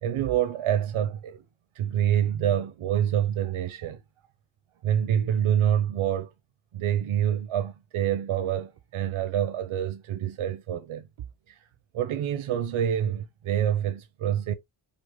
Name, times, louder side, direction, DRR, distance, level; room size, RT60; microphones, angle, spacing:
voice 1, 0.0-1.4 1.8-4.0 4.8-6.3 6.7-11.1 11.5-11.6 11.9-14.5, right 10 dB, 85° right, 0.8 m, -26 dB
5.3 x 2.1 x 3.6 m
cardioid pair, 85°, 48 cm